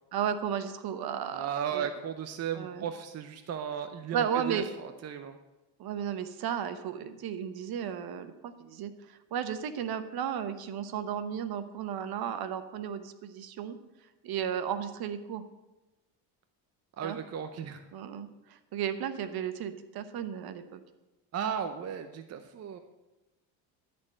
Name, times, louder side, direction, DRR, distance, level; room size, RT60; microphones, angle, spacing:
voice 1, 0.1-1.9 2.5-2.8 4.1-4.7 5.8-13.8 14.2-15.4 17.0-17.2 17.9-20.8, right 8 dB, 55° right, 11 dB, 1.0 m, -34 dB
voice 2, 1.3-5.4 17.0-17.8 21.3-22.8, right 8 dB, 35° right, 8 dB, 0.7 m, -35 dB
13.0 x 4.5 x 7.4 m, 1.1 s
supercardioid pair, 100°, 44 cm